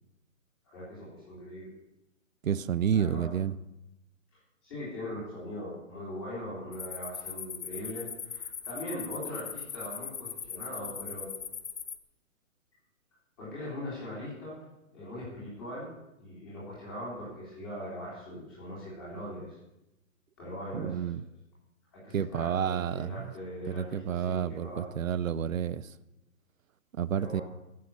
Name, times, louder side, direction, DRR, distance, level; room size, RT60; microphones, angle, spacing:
voice 1, 0.7-1.7 2.9-3.3 4.3-11.3 13.4-14.6 14.9-15.9 16.2-19.6 20.4-21.1 21.9-24.9 27.1-27.4, left 1 dB, 15° left, 3.5 m, -41 dB
voice 2, 2.4-3.5 20.7-21.2 22.1-23.2 23.7-25.9 27.0-27.4, right 8 dB, 70° right, 0.7 m, -30 dB
sound 1, 6.7-12.0, left 7 dB, 50° left, 0.8 m, -40 dB
15.0 x 6.7 x 7.0 m
hypercardioid pair, 180°, 42 cm